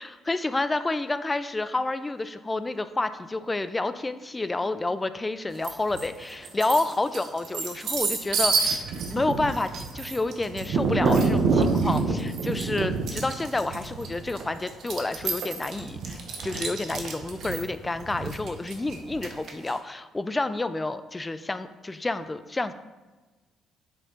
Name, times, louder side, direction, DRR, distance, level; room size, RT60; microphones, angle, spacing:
voice 1, 0.0-22.7, left 2 dB, 15° left, 12 dB, 0.4 m, -29 dB
sound 1, 5.6-6.1 6.4-19.7, right 4 dB, 65° right, 0.9 m, -27 dB
7.5 x 4.2 x 3.8 m, 1.2 s
cardioid pair, 95°, 0 cm